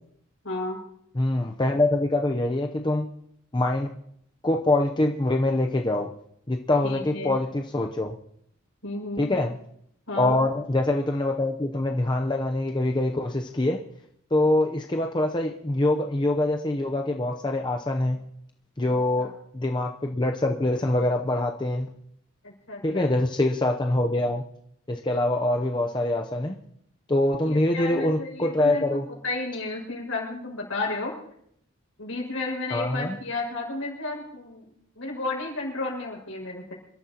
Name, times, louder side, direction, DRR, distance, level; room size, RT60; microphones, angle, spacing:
voice 1, 0.4-0.8 6.8-7.3 8.8-9.3 10.1-10.4 19.2-19.3 22.4-23.1 27.4-31.1 32.0-34.7 35.0-36.7, left 2 dB, 70° left, -1 dB, 5.8 m, -32 dB
voice 2, 1.1-3.1 3.5-3.9 4.4-6.1 6.5-8.1 9.2-9.6 10.2-13.8 14.3-18.2 18.8-19.3 19.5-21.9 22.8-24.4 24.9-26.5 27.1-29.1 32.7-33.2, left 1 dB, 20° left, 2 dB, 0.7 m, -24 dB
27.0 x 13.0 x 2.9 m, 0.71 s
head